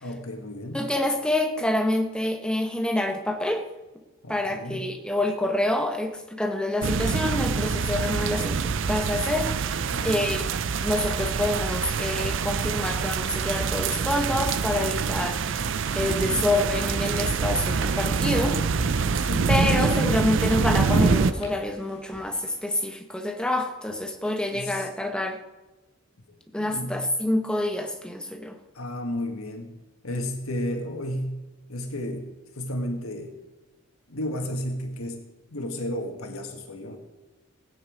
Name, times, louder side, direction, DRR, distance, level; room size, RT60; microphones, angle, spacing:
voice 1, 0.0-0.8 4.2-4.9 9.9-10.4 16.3-16.5 18.8-20.3 24.5-24.8 26.3-27.1 28.7-29.8 30.0-31.4 31.7-32.3 32.6-33.3 34.1-35.2 35.5-37.0, left 1 dB, 75° left, 4 dB, 1.7 m, -33 dB
voice 2, 0.7-3.7 4.3-10.4 10.8-15.6 15.9-18.6 18.9-19.1 19.5-25.4 26.5-28.6, left 1 dB, 5° left, 4 dB, 1.0 m, -27 dB
sound 1, 6.8-21.3, right 5 dB, 55° right, 0.5 m, -25 dB
sound 2, 14.4-22.6, equal, 30° left, 3.9 m, -38 dB
17.0 x 9.3 x 5.1 m, 1.1 s
head